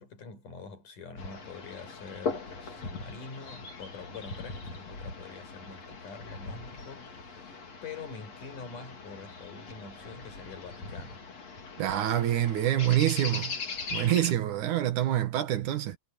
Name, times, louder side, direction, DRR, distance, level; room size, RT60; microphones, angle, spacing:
voice 1, 0.0-11.3, left 5 dB, 80° left, 6.6 m, -45 dB
sound 1, 1.2-14.3, left 4 dB, 55° left, 5.0 m, -40 dB
voice 2, 11.8-13.6 13.9-16.0, right 12 dB, 75° right, 3.0 m, -26 dB
omnidirectional pair, 3.6 m